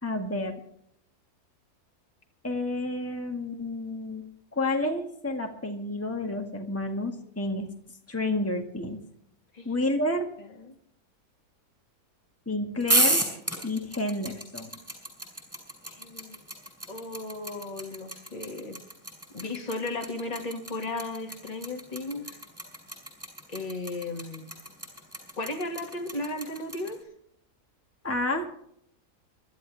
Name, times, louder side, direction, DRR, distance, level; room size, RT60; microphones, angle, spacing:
voice 1, 0.0-0.6 2.4-4.2 4.5-7.7 8.1-9.0 9.6-10.3 12.5-13.2 13.6-14.8 28.0-28.5, left 1 dB, 10° left, 3 dB, 1.9 m, -30 dB
sound 1, 12.8-26.9, right 1 dB, 10° right, 5.2 m, -30 dB
voice 2, 15.9-16.4 16.9-18.8 19.3-22.4 23.5-24.4 25.4-27.0, left 2 dB, 25° left, 2 dB, 2.2 m, -35 dB
24.5 x 13.0 x 3.5 m, 0.70 s
omnidirectional pair, 1.7 m